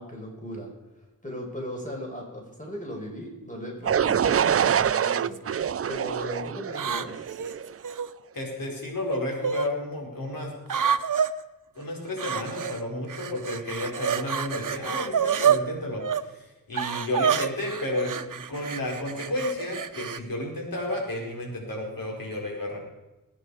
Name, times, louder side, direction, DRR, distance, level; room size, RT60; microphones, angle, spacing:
voice 1, 0.0-7.2, equal, 20° left, 0 dB, 4.8 m, -38 dB
sound 1, 3.9-7.7, right 8 dB, 45° right, 0.4 m, -25 dB
sound 2, 4.1-4.4 5.2-5.7 6.7-8.1 9.1-9.7 10.7-11.3 12.2-12.8 13.1-15.6 16.0-16.2 16.7-20.2, right 8 dB, 65° right, 0.8 m, -28 dB
voice 2, 8.3-10.8 11.8-22.8, left 1 dB, 75° left, -1 dB, 4.8 m, -32 dB
21.0 x 9.7 x 4.9 m, 1.0 s
cardioid pair, 55°, 34 cm